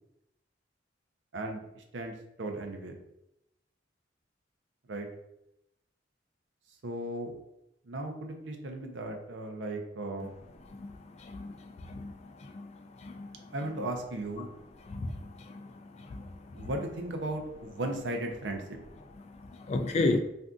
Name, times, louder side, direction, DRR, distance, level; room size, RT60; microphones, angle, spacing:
voice 1, 1.3-2.9 4.9-5.1 6.8-7.3 7.9-10.4 13.5-14.5 16.5-18.8, right 1 dB, 80° right, 0.5 m, -36 dB
voice 2, 19.7-20.2, left 2 dB, 35° left, 0.3 m, -31 dB
2.6 x 2.3 x 3.6 m
head